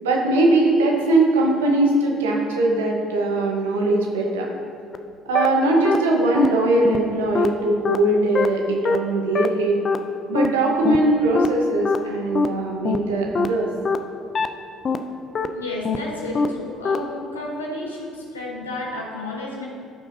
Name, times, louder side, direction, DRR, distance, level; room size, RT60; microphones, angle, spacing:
voice 1, 0.0-4.5 5.2-9.8 10.3-13.7, right 2 dB, 75° right, 0 dB, 1.1 m, -20 dB
sound 1, 4.9-5.0 5.3-5.5 5.8-6.0 6.3-6.5 6.8-7.0 7.3-7.5 7.8-8.0 8.3-8.5 8.8-9.0 9.3-9.5 9.8-10.0 10.3-10.5 10.8-11.0 11.3-11.5 11.8-12.0 12.3-12.5 12.8-13.0 13.3-13.5 13.8-14.0 14.3-14.5 14.8-15.0 15.3-15.5 15.8-16.0 16.3-16.5 16.8-17.0, left 5 dB, 40° left, 0.5 m, -21 dB
voice 2, 15.5-19.7, left 2 dB, 85° left, -2 dB, 1.3 m, -32 dB
14.0 x 5.8 x 2.7 m, 2.4 s
figure-of-eight pair, 50°, 0 cm